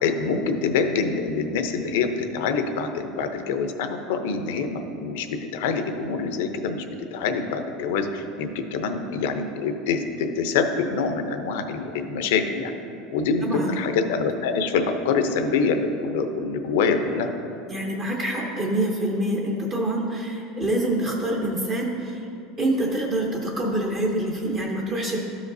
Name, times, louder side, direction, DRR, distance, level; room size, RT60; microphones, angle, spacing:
voice 1, 0.0-6.8 7.1-12.7 13.1-17.3, left 5 dB, 80° left, 6 dB, 0.7 m, -25 dB
voice 2, 13.4-13.8 17.7-22.3 22.6-25.2, right 1 dB, 25° right, -1 dB, 0.7 m, -26 dB
13.0 x 5.0 x 2.7 m, 2.7 s
supercardioid pair, 155°, 0 cm